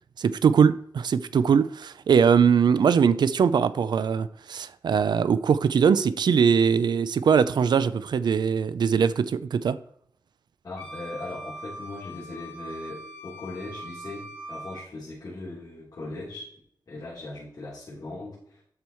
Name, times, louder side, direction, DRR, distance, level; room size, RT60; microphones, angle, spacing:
voice 1, 0.2-9.8, right 6 dB, 85° right, 0.4 m, -21 dB
voice 2, 10.6-16.4 16.9-18.6, left 2 dB, 55° left, 3.8 m, -39 dB
Wind instrument woodwind instrument, 10.8-14.8, right 1 dB, 25° left, 3.8 m, -41 dB
12.5 x 4.7 x 4.5 m
wide cardioid pair, 180°, 7 cm